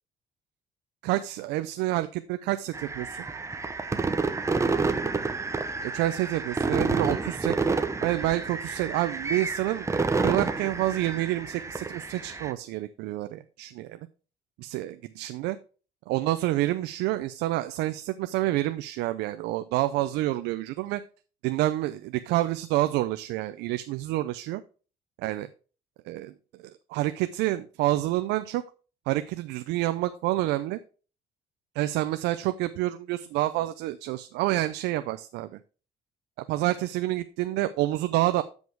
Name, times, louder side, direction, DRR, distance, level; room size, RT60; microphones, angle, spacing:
voice 1, 1.0-3.2 5.8-7.6 8.0-9.9 10.2-14.0 14.6-15.6 16.1-21.0 21.4-24.6 25.2-25.5 26.1-26.3 26.6-28.6 29.1-30.8 31.7-35.6 36.5-38.4, right 16 dB, 90° right, 11 dB, 0.5 m, -28 dB
sound 1, 2.7-12.5, right 4 dB, 15° right, 0.8 m, -29 dB
7.9 x 5.3 x 4.6 m, 0.37 s
cardioid pair, 110°, 17 cm